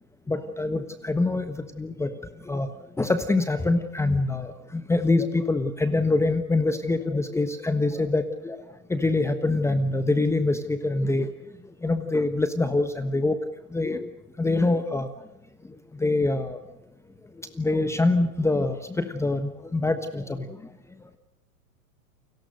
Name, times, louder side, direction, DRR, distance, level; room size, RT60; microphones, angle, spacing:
voice 1, 0.3-2.1 2.5-2.7 3.0-8.6 8.9-11.3 11.8-13.4 13.7-14.1 14.4-15.1 16.0-16.6 17.4-20.5, left 2 dB, 5° left, 10 dB, 1.3 m, -25 dB
29.5 x 22.5 x 6.6 m, 0.89 s
hypercardioid pair, 120°, 45 cm